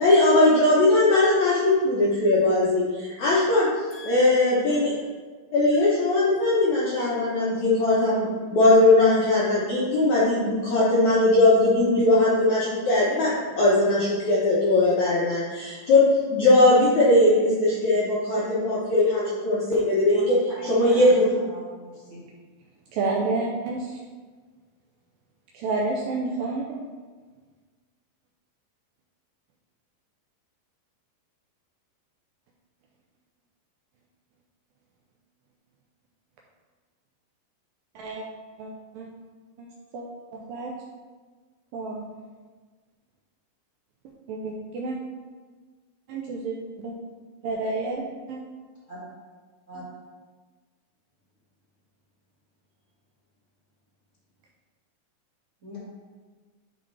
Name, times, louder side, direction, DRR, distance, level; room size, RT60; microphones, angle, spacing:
voice 1, 0.0-3.7 4.0-4.9 5.5-21.3, left 2 dB, 75° left, -7 dB, 1.7 m, -20 dB
voice 2, 3.9-4.9 20.1-20.2 20.5-22.2 48.9-49.0 49.7-49.8 55.6-55.8, left 1 dB, 45° right, -9 dB, 0.9 m, -43 dB
voice 3, 22.9-24.0 25.5-26.8 38.0-38.3 38.6-39.1 39.6-40.1 40.3-40.7 41.7-42.0 44.3-45.0 46.1-46.9 47.4-48.4, right 3 dB, 80° right, -2 dB, 2.1 m, -30 dB
11.0 x 4.0 x 3.3 m, 1.4 s
omnidirectional pair, 4.7 m